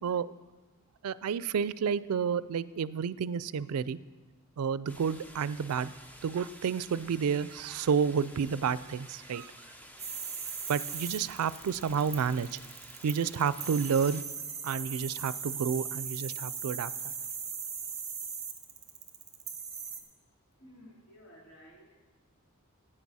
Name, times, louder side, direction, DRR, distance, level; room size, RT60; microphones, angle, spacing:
voice 1, 0.0-0.3 1.0-4.0 4.6-5.9 6.2-9.5 10.7-12.6 13.0-14.2 14.6-17.1, right 6 dB, 85° right, 17 dB, 0.4 m, -30 dB
sound 1, 4.9-14.2, equal, 5° left, 0.6 m, -51 dB
Ratón inalámbrico, 10.0-20.0, right 6 dB, 15° right, 1.1 m, -39 dB
voice 2, 20.5-22.0, equal, 55° left, -4 dB, 2.9 m, -54 dB
15.0 x 8.9 x 4.1 m, 1.3 s
head